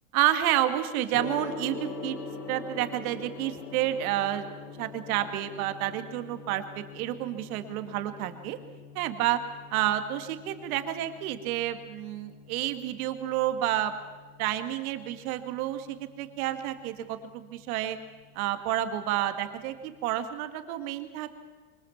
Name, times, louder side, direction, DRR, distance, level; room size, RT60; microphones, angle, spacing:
voice 1, 0.1-2.2 2.5-4.5 4.8-8.6 8.9-9.4 9.7-13.9 14.4-18.0 18.4-21.3, right 13 dB, 65° right, 9 dB, 2.3 m, -30 dB
Gong, 1.1-20.1, left 4 dB, 55° left, 3.9 m, -45 dB
24.0 x 20.0 x 7.4 m, 1.4 s
supercardioid pair, 130°, 45 cm